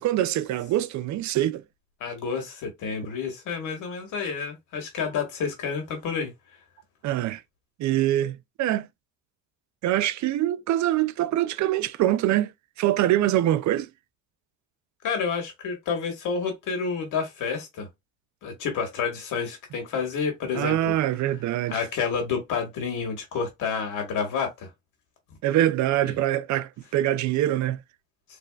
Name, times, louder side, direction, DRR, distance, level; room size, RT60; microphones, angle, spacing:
voice 1, 0.0-1.6 7.0-7.4 7.8-8.9 9.8-12.5 12.8-13.9 20.5-21.8 25.4-27.8, right 13 dB, 70° right, 0.5 m, -24 dB
voice 2, 2.0-6.3 15.0-17.9 18.4-20.9 21.7-24.7 26.0-26.1, left 5 dB, 85° left, 1.8 m, -29 dB
3.7 x 3.3 x 2.4 m
cardioid pair, 90°, 30 cm